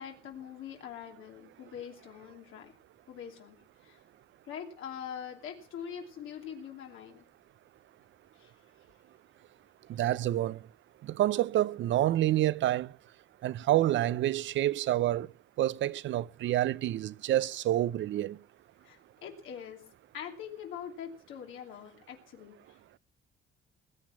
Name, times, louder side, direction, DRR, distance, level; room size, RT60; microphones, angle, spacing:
voice 1, 0.0-2.7 3.1-3.6 3.8-4.0 4.4-7.2 8.4-8.5 18.8-19.8 20.1-22.5, left 8 dB, 85° left, 2.9 m, -43 dB
voice 2, 9.9-10.6 11.0-12.9 13.4-15.3 15.6-18.4, right 13 dB, 70° right, 0.6 m, -28 dB
19.5 x 8.4 x 6.0 m
cardioid pair, 90°, 20 cm